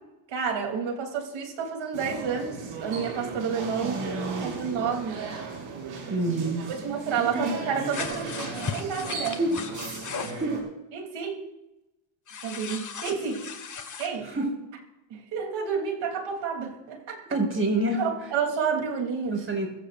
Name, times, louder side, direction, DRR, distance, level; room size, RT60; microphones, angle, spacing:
voice 1, 0.3-4.0 4.4-5.2 6.7-9.4 10.9-11.4 12.4-13.4 14.0-14.3 15.1-17.2 18.0-19.5, right 6 dB, 60° right, 2 dB, 3.6 m, -30 dB
sound 1, 1.9-10.6, right 4 dB, 75° right, 6.1 m, -36 dB
voice 2, 3.8-4.5 6.1-6.7 7.3-7.5 9.4-9.5 10.4-10.5 14.3-14.5 17.3-18.0 19.3-19.7, right 2 dB, 25° right, 1 dB, 5.8 m, -27 dB
sound 2, 7.9-10.4 12.3-14.1, left 6 dB, 35° left, 1.8 m, -36 dB
22.0 x 15.0 x 2.6 m, 0.96 s
cardioid pair, 95°, 50 cm